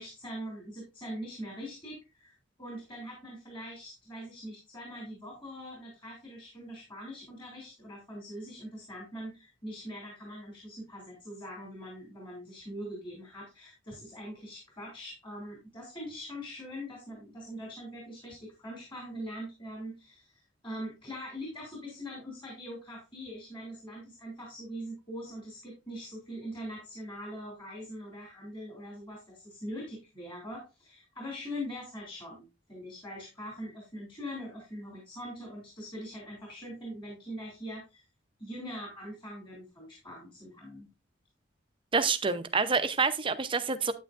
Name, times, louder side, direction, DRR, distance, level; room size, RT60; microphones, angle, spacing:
voice 1, 0.0-2.3 2.6-38.0 38.4-40.9, equal, 25° left, 2.9 m, -42 dB
voice 2, 41.9-43.9, right 4 dB, 25° right, 0.6 m, -27 dB
9.0 x 8.8 x 2.5 m
head